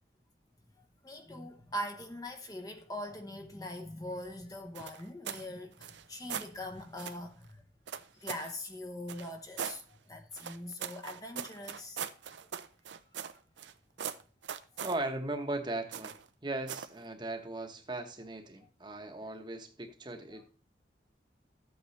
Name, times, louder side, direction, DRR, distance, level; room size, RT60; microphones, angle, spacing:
voice 1, 1.0-7.6 8.2-9.8 10.1-12.0 20.3-20.4, left 1 dB, 20° left, 0.9 m, -42 dB
sound 1, 4.7-5.5 5.8-6.5 7.0-7.2 7.9-8.5 9.1-9.8 10.4-13.7 14.0-15.0 15.9-16.3 16.7-17.0, right 8 dB, 80° right, 0.6 m, -40 dB
voice 2, 14.8-20.6, right 2 dB, 25° right, 1.0 m, -38 dB
13.5 x 8.4 x 3.2 m
head